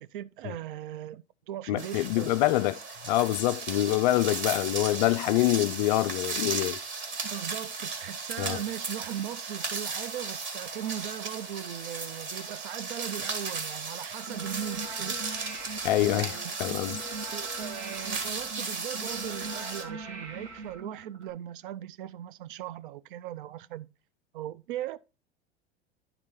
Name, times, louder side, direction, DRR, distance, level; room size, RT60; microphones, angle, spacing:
voice 1, 0.0-2.4 7.2-15.5 16.1-16.5 17.3-23.9 24.3-25.0, right 12 dB, 50° right, 0.4 m, -39 dB
voice 2, 1.7-2.8 3.1-6.8 8.4-8.6 15.8-17.0, left 15 dB, 45° left, 0.4 m, -25 dB
sound 1, 1.8-19.8, right 4 dB, 35° right, 1.7 m, -36 dB
sound 2, 14.2-21.3, right 3 dB, 80° right, 2.1 m, -41 dB
11.0 x 3.9 x 4.3 m
figure-of-eight pair, 80°, 33 cm